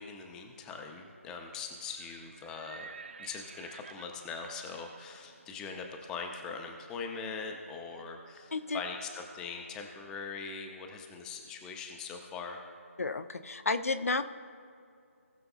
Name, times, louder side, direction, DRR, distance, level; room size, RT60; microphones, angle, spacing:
voice 1, 0.0-2.9 3.2-12.6, left 5 dB, 10° left, 3 dB, 0.6 m, -41 dB
Livestock farm animals working animals, 1.7-7.5, right 5 dB, 50° right, 0.6 m, -52 dB
voice 2, 13.0-14.2, left 3 dB, 75° left, 9 dB, 0.6 m, -31 dB
19.5 x 6.7 x 2.4 m, 2.4 s
figure-of-eight pair, 155°, 8 cm